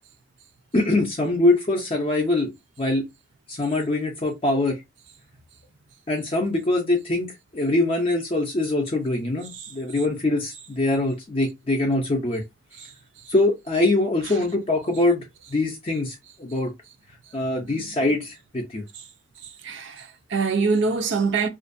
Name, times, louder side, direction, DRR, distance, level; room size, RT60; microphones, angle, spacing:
voice 1, 0.7-3.1 3.5-4.8 6.1-12.4 13.3-15.2 15.5-16.7 17.3-18.8, left 2 dB, 30° left, 0.5 m, -23 dB
voice 2, 19.4-21.5, right 4 dB, 60° right, 0.5 m, -25 dB
2.5 x 2.2 x 2.5 m
head